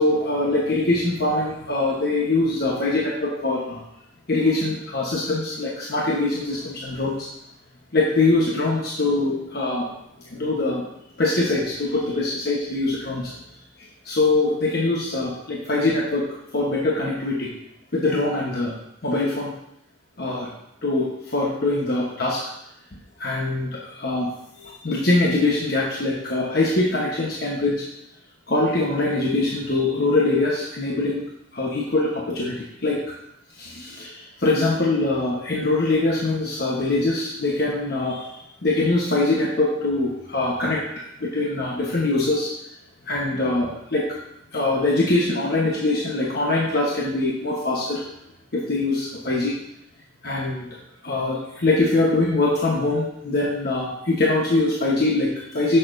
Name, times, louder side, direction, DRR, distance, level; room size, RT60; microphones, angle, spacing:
voice 1, 0.0-3.8 4.3-7.3 7.9-9.9 10.2-10.9 11.2-13.3 14.0-16.3 16.5-17.5 17.9-18.7 19.0-19.5 20.2-20.5 20.8-22.5 23.2-24.3 24.6-27.8 28.5-31.2 31.5-33.1 33.6-40.8 41.2-42.5 43.1-44.2 44.5-48.0 48.5-49.5 50.2-50.7 51.0-55.8, left 2 dB, 60° left, -4 dB, 1.1 m, -23 dB
10.5 x 6.8 x 2.6 m, 0.80 s
head